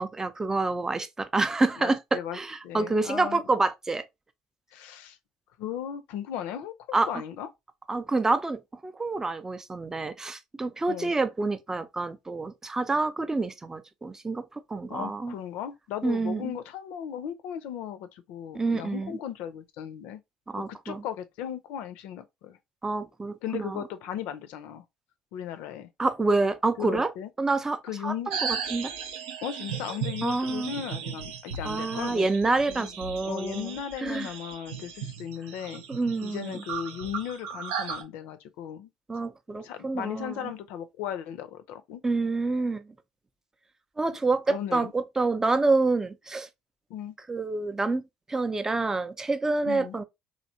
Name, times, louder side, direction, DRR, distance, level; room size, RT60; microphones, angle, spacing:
voice 1, 0.0-4.0 6.9-7.2 7.9-15.4 16.0-16.6 18.5-19.1 20.5-21.0 22.8-23.8 26.0-27.1 27.4-28.9 30.2-30.7 31.6-33.7 34.0-34.3 35.9-36.6 39.1-40.5 42.0-42.8 44.0-46.5 47.3-48.0 48.3-50.0, right 3 dB, 20° right, 0.5 m, -28 dB
voice 2, 1.8-2.4 2.6-3.4 4.7-5.2 5.6-7.5 10.9-11.1 14.9-20.2 20.6-22.6 23.4-24.8 25.3-25.9 26.8-27.3 27.8-28.3 29.4-32.3 32.7-32.9 33.3-35.8 36.2-38.9 39.6-42.0 44.5-44.9 46.9-47.2 49.6-50.0, left 9 dB, 65° left, 0.5 m, -36 dB
sound 1, 28.3-38.0, right 6 dB, 75° right, 0.5 m, -36 dB
3.1 x 2.6 x 2.6 m
hypercardioid pair, 60°, 3 cm